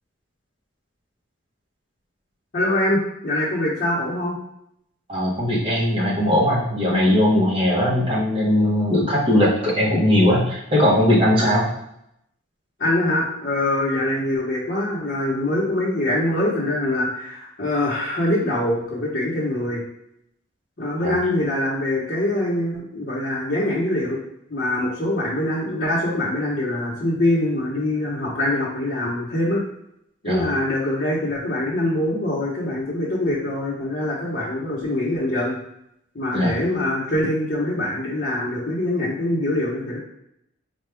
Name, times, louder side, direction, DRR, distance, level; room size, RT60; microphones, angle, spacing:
voice 1, 2.5-4.4 11.4-11.6 12.8-19.8 20.8-24.2 24.5-29.6 30.2-35.6 36.1-40.0, left 1 dB, 45° left, -7 dB, 0.9 m, -24 dB
voice 2, 5.1-11.7 21.0-21.1 30.3-30.5 36.3-36.6, left 1 dB, 25° right, -5 dB, 1.0 m, -19 dB
4.5 x 2.3 x 3.4 m, 0.77 s
head